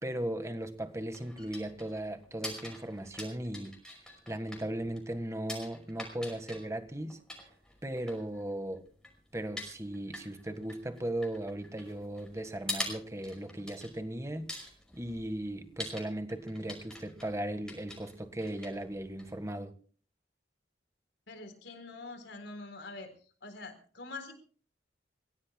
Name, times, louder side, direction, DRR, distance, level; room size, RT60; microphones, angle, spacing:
voice 1, 0.0-3.7 4.3-7.2 7.8-8.8 9.3-14.5 14.9-19.7, right 1 dB, 15° right, 1.5 m, -37 dB
sound 1, 0.6-19.6, left 1 dB, 5° left, 5.4 m, -46 dB
voice 2, 21.3-23.1 23.4-24.3, left 3 dB, 80° left, 4.2 m, -45 dB
28.5 x 16.5 x 2.3 m
head